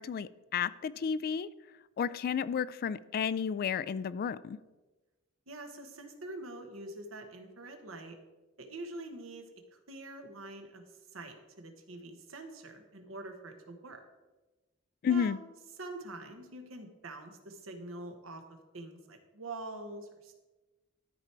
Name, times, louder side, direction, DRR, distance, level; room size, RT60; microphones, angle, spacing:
voice 1, 0.0-1.5 2.0-4.6 15.0-15.4, left 7 dB, 45° left, 0.3 m, -32 dB
voice 2, 5.5-8.2 8.6-9.5 9.7-10.8 11.1-14.0 15.1-15.4 15.8-20.3, right 2 dB, 75° right, 1.2 m, -45 dB
13.0 x 4.7 x 4.4 m
head